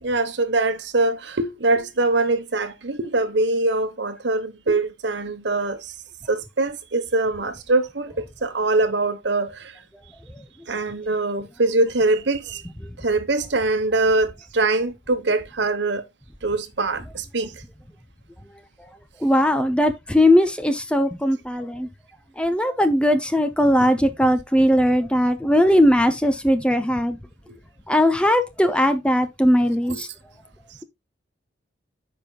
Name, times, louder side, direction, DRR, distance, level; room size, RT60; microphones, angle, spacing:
voice 1, 0.0-5.8 6.3-9.7 10.7-12.6 13.0-16.0 16.4-17.5 27.5-27.6 29.9-30.0, right 2 dB, 70° right, 1.1 m, -23 dB
voice 2, 19.2-21.9 22.4-27.2 27.9-30.1, equal, 5° left, 0.6 m, -19 dB
13.5 x 5.3 x 2.3 m
head